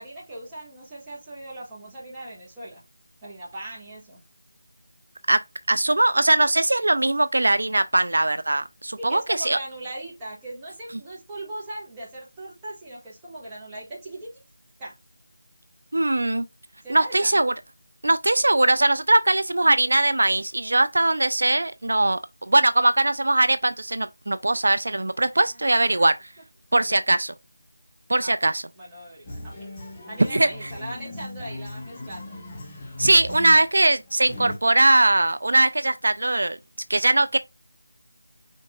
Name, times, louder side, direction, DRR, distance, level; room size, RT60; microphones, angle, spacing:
voice 1, 0.0-2.8 3.2-4.2 9.0-14.3 14.8-15.0 16.8-17.4 25.3-26.0 26.8-27.0 28.2-28.4 28.7-32.4, right 1 dB, 10° right, 1.6 m, -39 dB
voice 2, 5.7-9.6 15.9-16.4 16.9-17.5 18.0-22.2 22.5-26.1 26.7-27.3 28.1-28.6 30.3-30.5 33.0-36.6 36.9-37.4, right 2 dB, 70° right, 0.4 m, -20 dB
sound 1, 29.2-34.6, left 1 dB, 15° left, 1.0 m, -38 dB
5.2 x 3.5 x 2.3 m
figure-of-eight pair, 170°, 0 cm